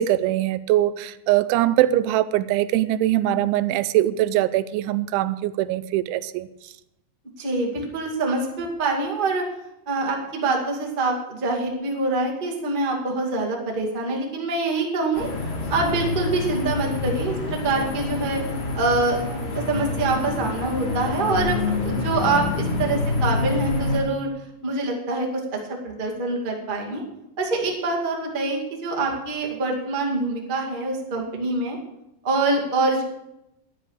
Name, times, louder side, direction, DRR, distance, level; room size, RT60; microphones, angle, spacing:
voice 1, 0.0-6.7, right 13 dB, 85° right, 14 dB, 3.0 m, -22 dB
voice 2, 7.4-9.4 9.8-15.3 15.7-18.4 18.7-19.2 19.5-24.3 24.6-25.3 25.7-27.0 27.4-31.8 32.2-33.0, right 3 dB, 25° right, -1 dB, 1.0 m, -25 dB
sound 1, 15.1-24.0, left 3 dB, 60° left, 4.7 m, -27 dB
11.5 x 9.9 x 6.5 m, 0.87 s
omnidirectional pair, 5.3 m